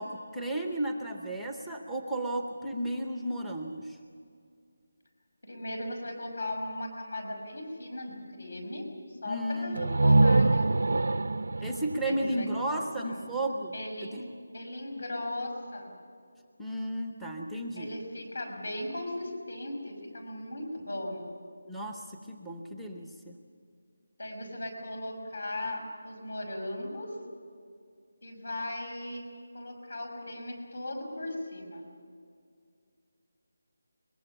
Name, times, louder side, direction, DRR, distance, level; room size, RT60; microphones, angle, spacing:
voice 1, 0.0-4.0 9.2-10.0 11.6-13.7 14.1-14.2 16.6-17.9 21.7-23.3, right 1 dB, ahead, 3 dB, 0.7 m, -34 dB
voice 2, 5.4-11.2 12.0-13.3 13.7-15.9 17.7-21.3 24.2-27.1 28.2-29.2 29.5-31.8, left 1 dB, 60° left, 4 dB, 5.6 m, -38 dB
sound 1, 9.7-13.5, right 2 dB, 55° right, 0.5 m, -25 dB
22.5 x 21.5 x 7.1 m, 2.2 s
figure-of-eight pair, 180°, 0 cm